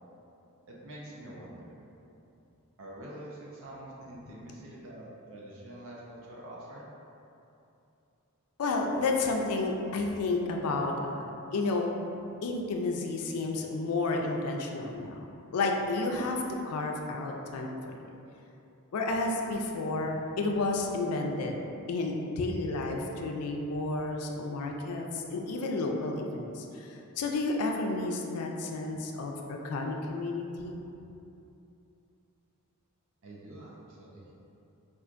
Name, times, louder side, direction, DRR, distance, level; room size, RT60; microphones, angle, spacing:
voice 1, 0.7-1.7 2.8-6.9 33.2-34.2, right 1 dB, 65° right, -5 dB, 0.5 m, -46 dB
voice 2, 8.6-12.0 12.4-15.3 15.5-17.9 18.9-21.6 21.9-30.8, left 3 dB, 85° left, 1 dB, 0.4 m, -31 dB
4.5 x 2.4 x 2.5 m, 2.8 s
head